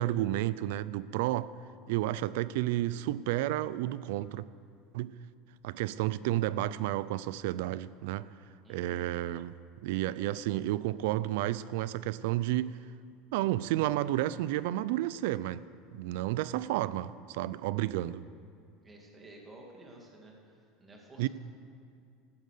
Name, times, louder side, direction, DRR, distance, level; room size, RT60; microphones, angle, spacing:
voice 1, 0.0-1.5 1.9-4.5 4.9-5.1 5.6-8.3 8.7-12.8 13.3-15.6 15.9-18.2 21.2-21.3, right 14 dB, 75° right, 0.4 m, -31 dB
voice 2, 8.6-9.0 18.8-20.3 20.8-21.3, right 1 dB, 15° right, 2.3 m, -52 dB
15.0 x 11.5 x 6.7 m
cardioid pair, 160°, 0 cm